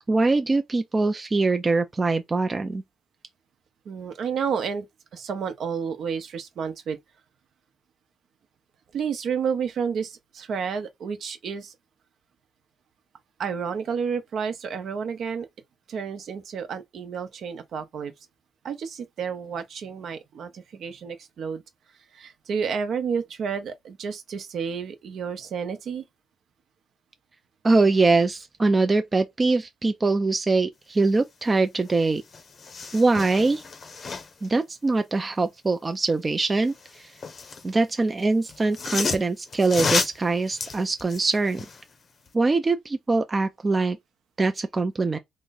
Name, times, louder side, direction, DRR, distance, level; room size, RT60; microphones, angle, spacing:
voice 1, 0.1-2.8 27.6-32.2 32.9-33.6 34.4-37.1 37.6-41.7 42.3-44.0 44.4-45.2, right 3 dB, 25° right, 0.4 m, -23 dB
voice 2, 3.9-4.9 5.1-7.0 8.9-11.7 13.4-15.5 15.9-18.1 18.6-21.6 22.1-26.0, right 6 dB, 65° right, 0.7 m, -30 dB
sound 1, 31.9-32.0 32.2-34.5 36.6-37.7 38.5-41.8 42.3-42.4, left 4 dB, 50° left, 0.7 m, -31 dB
3.0 x 2.5 x 3.9 m
cardioid pair, 90°, 0 cm